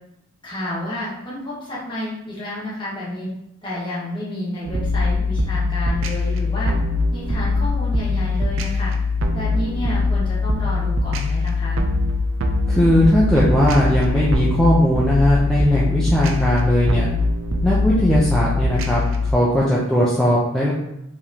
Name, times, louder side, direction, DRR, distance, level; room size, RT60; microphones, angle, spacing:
voice 1, 0.4-3.3 3.6-6.7 7.1-8.9 9.3-11.8, left 1 dB, 20° left, -8 dB, 1.5 m, -30 dB
sound 1, 4.6-19.3, left 2 dB, 65° right, 0.5 m, -22 dB
voice 2, 12.7-17.1 17.6-19.0 19.3-20.7, equal, 5° left, -8 dB, 0.6 m, -18 dB
4.8 x 3.4 x 2.9 m, 0.84 s
head